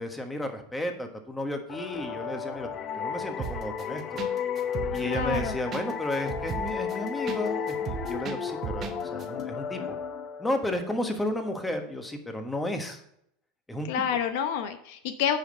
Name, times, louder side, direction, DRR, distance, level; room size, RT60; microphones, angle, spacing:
voice 1, 0.0-2.7 2.9-4.0 4.9-10.0 10.4-13.0 13.7-13.9, left 1 dB, 10° left, 5 dB, 1.3 m, -33 dB
sound 1, 1.7-11.1, left 7 dB, 40° left, 0.6 m, -33 dB
sound 2, 3.4-3.8 4.2-4.3 4.6-7.4 7.7-8.9 9.2-9.3, right 8 dB, 35° right, 1.2 m, -35 dB
voice 2, 5.0-5.6 13.9-15.4, left 8 dB, 70° left, 9 dB, 0.8 m, -28 dB
8.9 x 5.0 x 5.0 m, 0.73 s
supercardioid pair, 115°, 0 cm